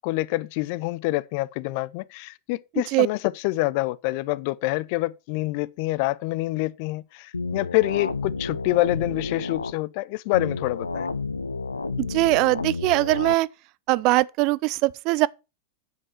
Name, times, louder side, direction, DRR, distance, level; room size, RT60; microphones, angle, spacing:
voice 1, 0.0-3.2 3.4-11.1, left 20 dB, 45° left, 0.5 m, -26 dB
voice 2, 2.7-3.1 12.0-13.5 13.9-15.3, right 20 dB, 40° right, 0.4 m, -21 dB
sound 1, 7.3-9.7 10.3-13.3, left 4 dB, 80° left, 0.7 m, -30 dB
9.5 x 7.7 x 4.4 m
figure-of-eight pair, 90°, 0 cm